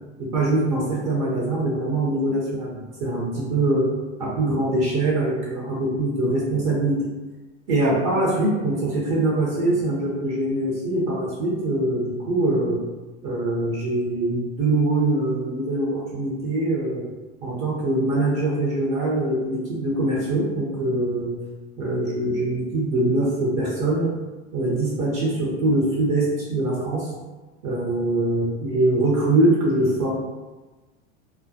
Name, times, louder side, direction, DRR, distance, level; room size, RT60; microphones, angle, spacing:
voice 1, 0.2-3.9 4.2-7.1 7.7-12.8 13.2-17.0 17.4-21.3 21.8-24.1 24.5-27.1 27.6-30.1, right 2 dB, 45° right, -4 dB, 0.8 m, -23 dB
2.3 x 2.1 x 2.6 m, 1.2 s
hypercardioid pair, 90°, 35 cm